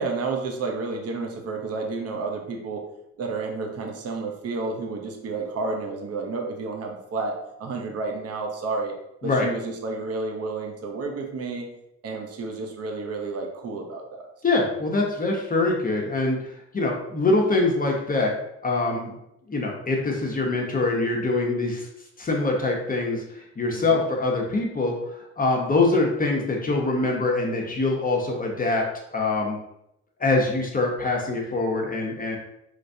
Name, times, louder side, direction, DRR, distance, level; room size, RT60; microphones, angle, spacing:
voice 1, 0.0-2.8 3.2-8.9 9.2-11.7 12.0-14.2 18.9-19.2 23.8-23.9, right 3 dB, 55° right, 2 dB, 0.8 m, -31 dB
voice 2, 14.4-18.3 18.6-19.1 19.5-21.9 22.2-29.6 30.2-32.4, left 3 dB, 30° left, 0 dB, 0.8 m, -24 dB
4.9 x 3.3 x 2.7 m, 0.82 s
cardioid pair, 90°, 30 cm